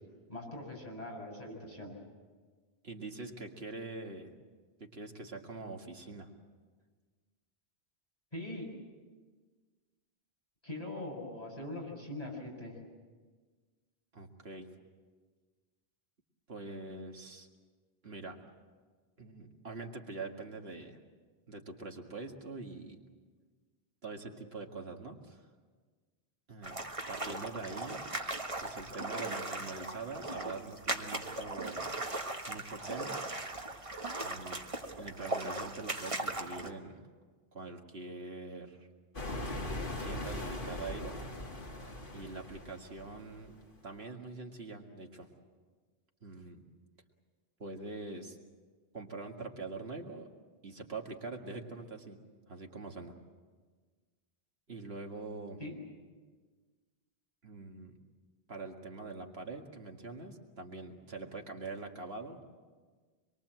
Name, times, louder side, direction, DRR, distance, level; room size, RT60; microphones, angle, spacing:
voice 1, 0.3-1.9 8.3-8.7 10.6-12.7 55.6-55.8, left 1 dB, 40° left, -2 dB, 7.1 m, -42 dB
voice 2, 2.8-4.3 4.8-6.3 14.1-14.7 16.5-17.5 18.0-18.4 19.2-21.0 21.5-23.0 24.0-25.5 26.5-26.8 27.1-28.1 28.6-31.9 32.5-33.2 34.2-34.6 35.0-37.0 37.5-38.9 40.0-41.2 42.1-43.6 43.8-45.3 46.2-46.6 47.6-48.4 48.9-50.3 50.6-52.2 52.5-53.1 54.7-55.6 57.4-57.9 58.5-62.4, right 3 dB, 75° right, 2 dB, 2.3 m, -44 dB
sound 1, 26.6-36.7, right 2 dB, 30° right, 1.5 m, -38 dB
sound 2, 39.1-43.6, left 1 dB, 60° left, 2.5 m, -40 dB
26.0 x 23.0 x 7.7 m, 1.4 s
omnidirectional pair, 1.0 m